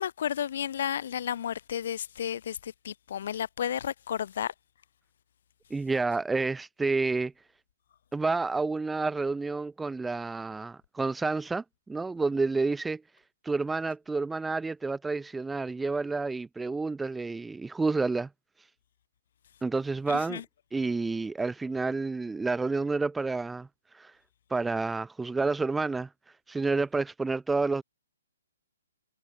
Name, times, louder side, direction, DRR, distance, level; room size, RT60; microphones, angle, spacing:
voice 1, 0.0-4.5 20.1-20.4, left 9 dB, 45° left, 1.7 m, -32 dB
voice 2, 5.7-7.3 8.1-13.0 13.4-18.3 19.6-20.4 20.7-23.7 23.9-24.1 24.5-26.1 26.5-27.8, right 3 dB, 5° right, 0.7 m, -29 dB
hypercardioid pair, 170°, 0 cm